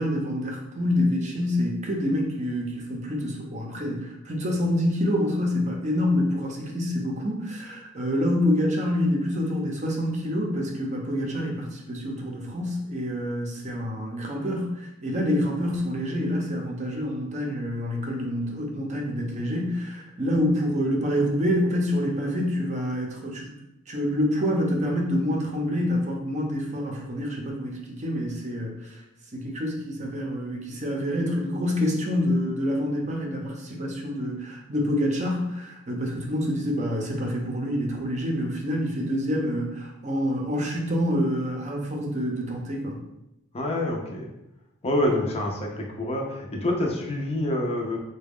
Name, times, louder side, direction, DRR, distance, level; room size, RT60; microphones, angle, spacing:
voice 1, 0.0-23.5 23.9-29.0 29.3-43.0, left 1 dB, 35° right, 0 dB, 0.6 m, -27 dB
voice 2, 43.5-44.3 44.8-48.0, left 1 dB, 30° left, 0 dB, 0.5 m, -27 dB
3.9 x 2.2 x 3.5 m, 0.88 s
head